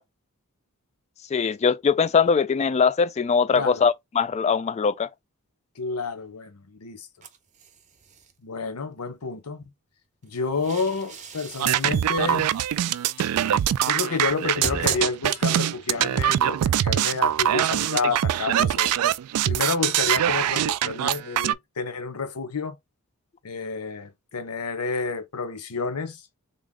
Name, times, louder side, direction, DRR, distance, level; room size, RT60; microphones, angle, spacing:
voice 1, 1.3-5.1, left 5 dB, 30° left, 0.3 m, -21 dB
voice 2, 3.5-3.8 5.8-7.1 8.4-9.6 10.2-12.5 13.9-19.0 19.5-22.8 23.4-26.2, left 4 dB, 85° left, 0.8 m, -29 dB
sound 1, 7.2-8.3 10.2-15.6, right 4 dB, 35° right, 0.6 m, -41 dB
sound 2, 11.6-21.5, right 11 dB, 80° right, 0.3 m, -23 dB
3.6 x 2.1 x 3.7 m
head